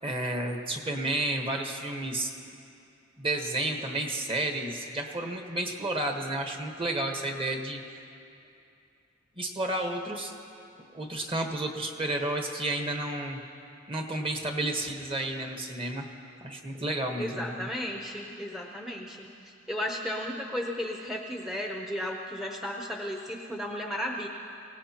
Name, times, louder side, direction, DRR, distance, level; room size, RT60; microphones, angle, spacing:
voice 1, 0.0-2.3 3.2-7.8 9.4-10.3 10.9-13.4 13.9-16.0 16.4-17.7, right 1 dB, 25° right, 3 dB, 1.3 m, -31 dB
voice 2, 17.2-19.3 19.7-24.3, equal, ahead, 0 dB, 0.7 m, -34 dB
24.0 x 17.5 x 2.9 m, 2.6 s
head